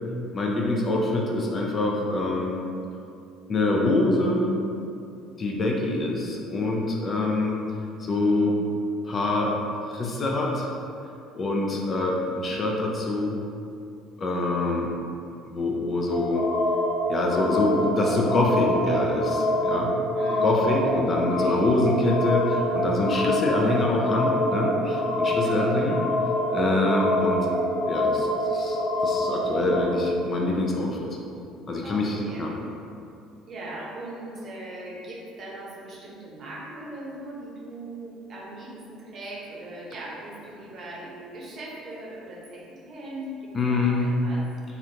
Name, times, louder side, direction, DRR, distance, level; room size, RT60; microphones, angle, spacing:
voice 1, 0.3-2.6 3.5-4.5 5.4-7.6 8.0-8.6 9.0-9.6 9.9-10.7 11.3-13.4 14.2-14.9 15.5-16.5 17.1-19.9 20.4-26.0 26.5-27.5 27.9-31.1 31.7-32.5 43.5-44.1, left 2 dB, 40° left, -1 dB, 0.5 m, -25 dB
sound 1, 16.1-29.8, left 1 dB, 75° left, 0.9 m, -26 dB
voice 2, 20.1-21.7 25.4-26.1 31.8-32.5 33.5-44.5, right 1 dB, 50° right, -4 dB, 0.8 m, -39 dB
3.0 x 2.5 x 2.8 m, 2.6 s
figure-of-eight pair, 55°, 0 cm